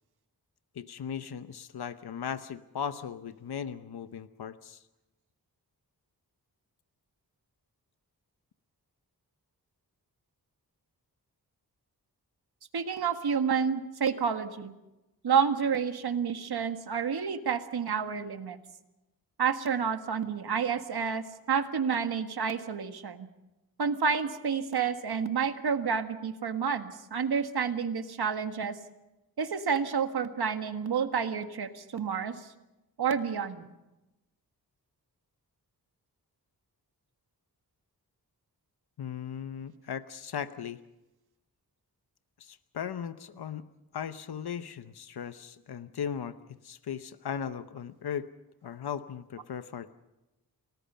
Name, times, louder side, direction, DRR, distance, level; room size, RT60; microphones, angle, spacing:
voice 1, 0.7-4.8 39.0-40.8 42.4-43.7 43.9-46.4 46.6-48.3 48.6-49.9, left 8 dB, 85° left, 11 dB, 0.9 m, -37 dB
voice 2, 12.7-14.7 15.2-18.6 19.4-23.3 23.8-28.8 29.4-32.3 33.0-33.7, right 6 dB, 80° right, 7 dB, 1.7 m, -29 dB
29.5 x 19.0 x 5.6 m, 0.99 s
wide cardioid pair, 145°, 38 cm